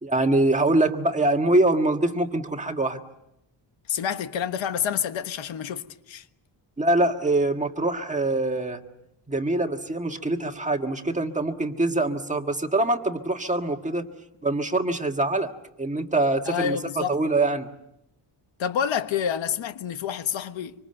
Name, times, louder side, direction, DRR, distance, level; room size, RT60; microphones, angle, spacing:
voice 1, 0.0-3.0 6.8-8.8 9.3-14.0 14.4-15.5 15.8-17.7, right 2 dB, 15° right, 1.6 m, -24 dB
voice 2, 3.9-6.2 16.5-17.2 18.6-20.7, left 8 dB, 75° left, 1.4 m, -28 dB
26.0 x 26.0 x 7.8 m
wide cardioid pair, 160°, 46 cm